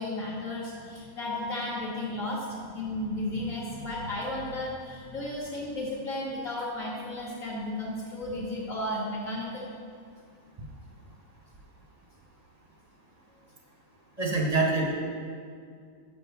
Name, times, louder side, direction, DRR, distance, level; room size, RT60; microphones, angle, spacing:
voice 1, 0.0-9.7, left 1 dB, 60° left, -6 dB, 1.5 m, -34 dB
voice 2, 14.2-14.8, right 3 dB, 30° right, -1 dB, 0.9 m, -25 dB
6.3 x 5.9 x 6.8 m, 2.2 s
omnidirectional pair, 1.6 m